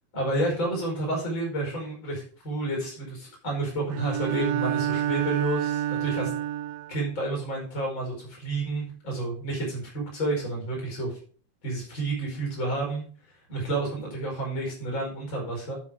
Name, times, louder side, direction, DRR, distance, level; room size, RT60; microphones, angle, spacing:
voice 1, 0.1-6.3 6.9-11.2 11.6-13.0 13.5-15.8, right 2 dB, 35° left, -1 dB, 5.7 m, -30 dB
Bowed string instrument, 3.9-7.0, right 11 dB, 85° right, 1.5 m, -28 dB
12.0 x 5.1 x 5.0 m, 0.42 s
omnidirectional pair, 3.5 m